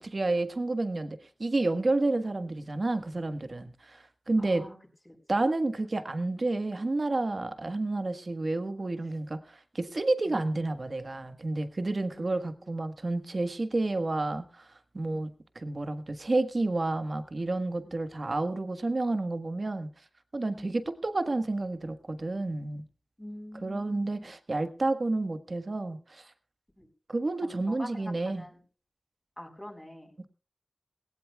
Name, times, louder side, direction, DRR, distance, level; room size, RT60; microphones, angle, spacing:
voice 1, 0.0-4.7 5.3-14.7 14.9-19.9 20.3-22.9 23.6-26.3 27.1-28.4 30.2-30.3, right 2 dB, 55° right, 8 dB, 1.4 m, -30 dB
voice 2, 4.4-4.8 5.1-5.2 10.3-10.4 12.2-12.7 20.5-20.7 23.2-24.3 26.8-26.9 27.4-28.6 29.4-30.1, left 1 dB, 15° left, 0 dB, 4.3 m, -45 dB
19.5 x 17.5 x 2.3 m, 0.36 s
wide cardioid pair, 70°, 0 cm